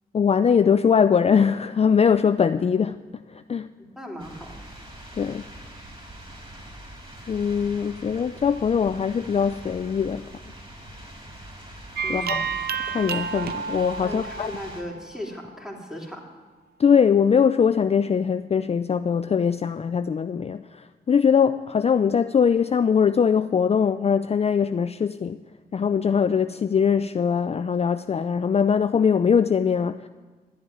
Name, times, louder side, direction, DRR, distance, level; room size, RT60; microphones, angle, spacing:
voice 1, 0.1-3.7 5.2-5.5 7.3-10.3 12.1-12.4 12.9-14.5 16.8-25.4 25.7-30.1, left 7 dB, 40° left, 11 dB, 0.4 m, -21 dB
voice 2, 3.8-4.6 12.0-12.4 14.0-16.2, equal, 5° right, 0 dB, 3.0 m, -37 dB
sound 1, 4.2-14.8, right 1 dB, 35° right, 4.2 m, -43 dB
sound 2, 11.9-15.5, right 6 dB, 90° right, 0.6 m, -31 dB
11.5 x 7.9 x 9.2 m, 1.3 s
cardioid pair, 60°, 16 cm